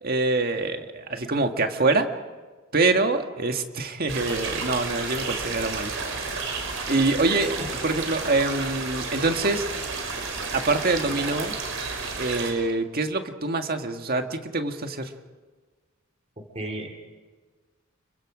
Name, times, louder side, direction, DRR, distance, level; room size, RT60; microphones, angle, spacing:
voice 1, 0.0-2.1 2.7-5.9 6.9-7.6 7.8-9.6 10.5-11.6 12.2-15.1, right 3 dB, 45° right, 5 dB, 1.8 m, -25 dB
sound 1, 4.1-12.5, right 4 dB, 70° right, 5.2 m, -31 dB
voice 2, 16.4-16.9, right 1 dB, 30° right, 1 dB, 3.1 m, -34 dB
29.5 x 24.0 x 5.1 m, 1.4 s
head